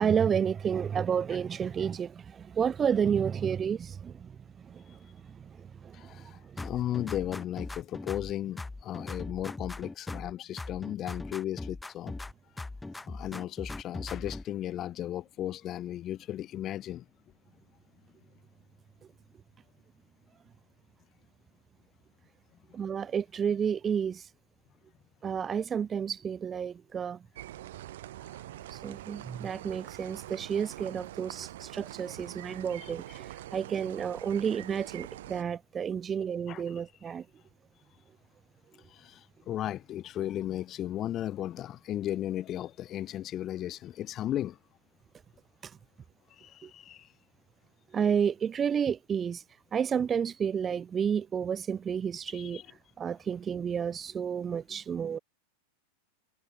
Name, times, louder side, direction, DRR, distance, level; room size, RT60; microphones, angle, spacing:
voice 1, 0.0-4.4 4.6-6.3 22.7-24.3 25.2-27.2 28.7-37.2 46.6-46.7 47.9-49.4 49.7-52.6 53.0-55.2, right 7 dB, 20° right, 0.5 m, -31 dB
voice 2, 5.9-12.1 13.1-17.0 36.5-36.6 38.9-44.6 46.4-47.1 52.3-52.7, left 12 dB, 30° left, 0.6 m, -35 dB
sound 1, 6.6-8.3 8.6-10.3 10.6-12.3 12.6-14.4, left 2 dB, 10° left, 2.6 m, -39 dB
sound 2, 27.4-35.4, right 14 dB, 55° right, 2.5 m, -44 dB
figure-of-eight pair, 90°, 0 cm